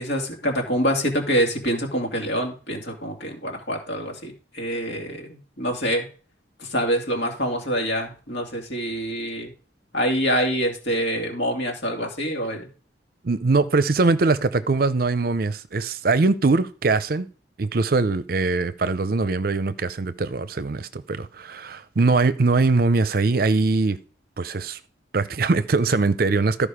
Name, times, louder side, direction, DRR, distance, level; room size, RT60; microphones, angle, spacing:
voice 1, 0.0-5.3 5.6-6.1 6.6-9.5 9.9-12.7, equal, 70° left, 2.6 m, -25 dB
voice 2, 13.2-17.3 17.6-24.0 24.4-24.8 25.1-26.7, right 3 dB, 55° right, 0.6 m, -22 dB
13.0 x 5.0 x 5.0 m
head